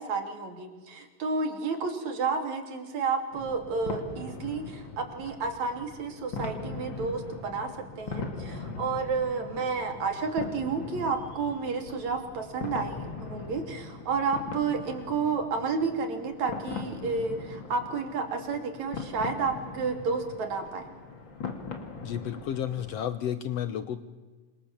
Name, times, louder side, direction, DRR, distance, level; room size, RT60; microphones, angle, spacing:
voice 1, 0.0-7.7 8.0-20.9, right 4 dB, 55° right, 5 dB, 3.9 m, -31 dB
sound 1, 3.3-23.0, left 4 dB, 35° left, 3.1 m, -40 dB
voice 2, 22.0-24.0, left 9 dB, 70° left, 12 dB, 1.5 m, -32 dB
28.0 x 25.0 x 7.4 m, 1.4 s
omnidirectional pair, 4.1 m